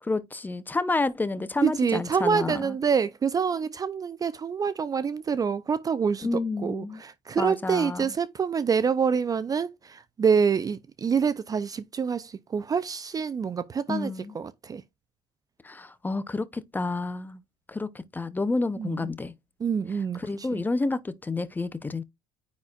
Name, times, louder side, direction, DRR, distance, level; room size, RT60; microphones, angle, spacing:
voice 1, 0.0-2.8 6.2-7.0 7.4-8.1 13.9-14.3 15.6-17.4 17.7-19.3 20.1-22.0, left 3 dB, 15° left, 0.7 m, -29 dB
voice 2, 1.6-14.8 18.8-19.1 19.6-20.6, right 6 dB, 25° right, 0.5 m, -27 dB
9.4 x 4.1 x 2.4 m
supercardioid pair, 105°, 13 cm